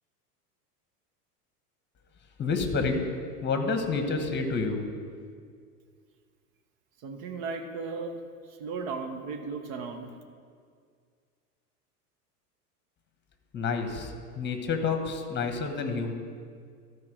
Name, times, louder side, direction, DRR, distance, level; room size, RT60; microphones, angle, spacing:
voice 1, 2.4-3.0 3.4-4.8 13.5-16.1, left 4 dB, 25° left, 6 dB, 1.2 m, -29 dB
voice 2, 7.0-8.2 8.6-10.1, right 4 dB, 55° right, 5 dB, 1.3 m, -35 dB
13.5 x 4.8 x 5.0 m, 2.1 s
hypercardioid pair, 95°, 47 cm